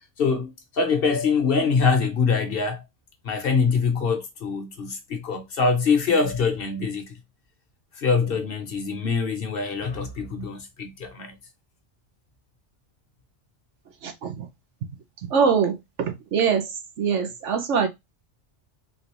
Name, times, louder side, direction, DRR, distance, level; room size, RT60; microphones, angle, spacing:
voice 1, 0.2-2.8 3.2-7.2 8.0-11.4, left 5 dB, 55° left, 0.9 m, -24 dB
voice 2, 14.0-14.5 15.2-16.7 17.0-17.9, right 6 dB, 75° right, 1.1 m, -23 dB
3.7 x 2.5 x 2.9 m
omnidirectional pair, 1.2 m